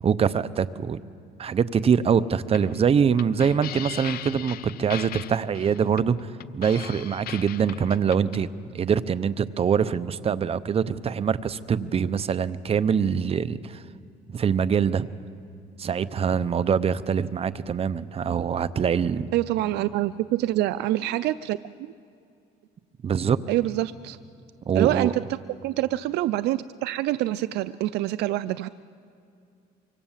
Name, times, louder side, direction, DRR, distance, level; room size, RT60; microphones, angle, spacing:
voice 1, 0.0-1.0 1.4-8.5 8.7-13.8 14.3-15.1 15.8-19.3 23.0-23.4 24.7-25.1, right 7 dB, 35° right, 15 dB, 0.8 m, -24 dB
sound 1, 2.5-8.4, left 12 dB, 65° left, 0.7 m, -39 dB
voice 2, 19.3-21.9 23.5-24.2 24.7-25.2 25.6-28.7, right 15 dB, 80° right, 14 dB, 0.5 m, -26 dB
24.5 x 24.0 x 7.4 m, 2.4 s
cardioid pair, 110°, 17 cm